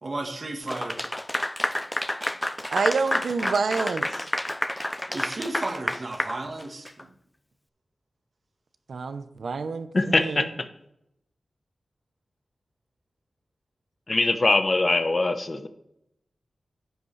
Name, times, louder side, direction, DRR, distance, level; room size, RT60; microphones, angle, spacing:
voice 1, 0.0-1.0 5.1-7.1 10.0-10.2, right 2 dB, 45° right, 3 dB, 1.5 m, -34 dB
Clapping / Applause, 0.7-7.0, left 1 dB, 10° left, 0.4 m, -29 dB
voice 2, 2.7-4.3 8.9-10.5, right 4 dB, 80° right, 10 dB, 0.8 m, -28 dB
voice 3, 9.9-10.7 14.1-15.7, left 2 dB, 40° left, 8 dB, 0.9 m, -22 dB
11.0 x 8.1 x 3.2 m, 0.80 s
wide cardioid pair, 95°, 0 cm